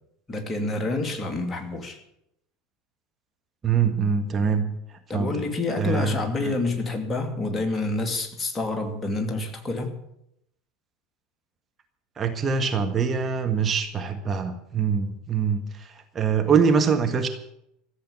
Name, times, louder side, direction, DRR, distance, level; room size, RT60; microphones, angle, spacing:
voice 1, 0.3-2.0 5.1-10.0, left 2 dB, 20° left, 4 dB, 2.7 m, -28 dB
voice 2, 3.6-4.7 5.1-5.5 5.7-6.5 12.2-17.3, right 6 dB, 30° right, 5 dB, 1.6 m, -24 dB
14.5 x 8.0 x 9.9 m, 0.78 s
figure-of-eight pair, 75°, 0 cm